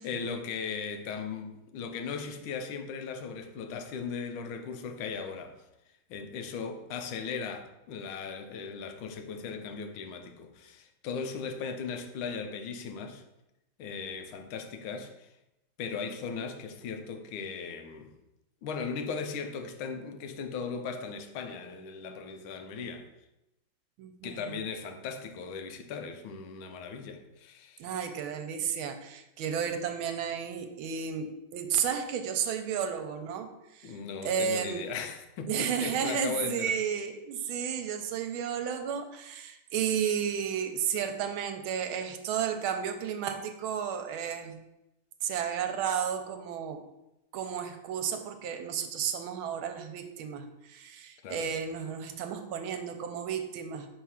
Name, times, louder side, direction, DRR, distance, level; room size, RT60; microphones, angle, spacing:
voice 1, 0.0-5.6 6.1-13.2 13.8-15.3 15.8-18.1 18.6-23.1 24.2-27.8 33.8-36.7 51.2-51.5, left 5 dB, 85° left, 1.5 m, -38 dB
voice 2, 24.0-24.6 27.8-33.5 33.7-33.9 34.2-34.8 35.5-44.6 45.2-46.8 47.3-53.9, right 8 dB, 80° right, 1.4 m, -32 dB
4.7 x 3.7 x 5.6 m
omnidirectional pair, 2.2 m